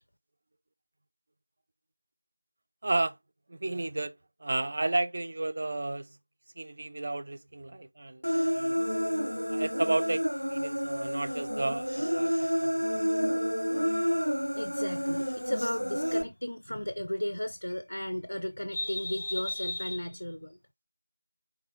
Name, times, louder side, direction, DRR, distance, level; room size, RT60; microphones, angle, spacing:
voice 1, 2.8-3.2 3.5-6.2 6.6-8.3 8.5-8.8 9.5-10.2 10.5-12.8, right 2 dB, 35° right, 0.3 m, -32 dB
Human voice, 8.2-16.2, equal, 90° left, 0.9 m, -29 dB
voice 2, 14.5-20.6, left 1 dB, 70° left, 0.5 m, -34 dB
4.7 x 2.9 x 3.0 m
figure-of-eight pair, 170°, 0 cm